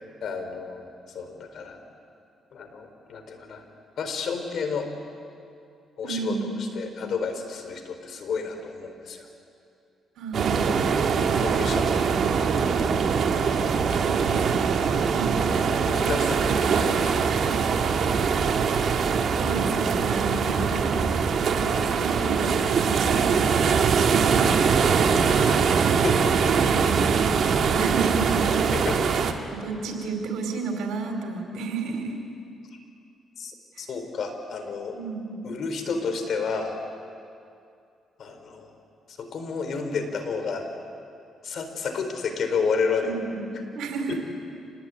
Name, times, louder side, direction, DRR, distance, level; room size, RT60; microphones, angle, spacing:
voice 1, 0.2-0.9 1.1-1.8 2.5-3.6 4.0-4.9 6.0-6.3 6.7-9.3 11.1-12.0 13.5-14.3 14.8-15.1 15.8-17.5 25.4-25.6 26.0-26.5 28.7-29.0 33.4-33.5 33.8-34.9 35.4-36.7 38.2-38.8 39.2-40.7 41.4-43.1 44.1-44.2, left 5 dB, 60° left, 6 dB, 4.1 m, -31 dB
voice 2, 6.0-6.5 10.2-10.8 14.0-14.2 15.1-15.6 19.3-20.9 21.4-25.3 26.9-27.1 27.7-28.6 29.0-32.2 34.9-35.4 43.0-44.2, right 3 dB, 80° right, 3 dB, 4.6 m, -32 dB
sound 1, 10.3-29.3, right 6 dB, 60° right, 2.1 m, -22 dB
27.0 x 20.0 x 9.6 m, 2.5 s
cardioid pair, 90°, 0 cm